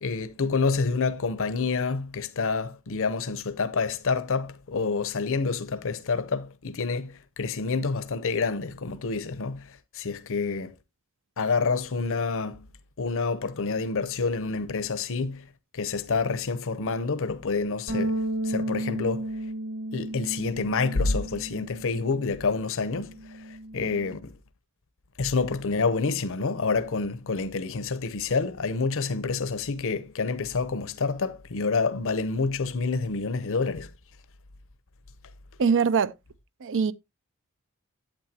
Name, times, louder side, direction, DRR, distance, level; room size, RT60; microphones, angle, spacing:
voice 1, 0.0-10.7 11.4-12.7 13.0-15.4 15.7-19.3 19.9-24.3 25.2-33.9, left 4 dB, 65° left, 0.7 m, -28 dB
sound 1, 17.9-22.4 22.7-24.1, right 1 dB, 90° right, 6.2 m, -33 dB
voice 2, 35.6-36.1 36.6-36.9, right 6 dB, 60° right, 0.5 m, -22 dB
8.8 x 8.1 x 2.8 m
head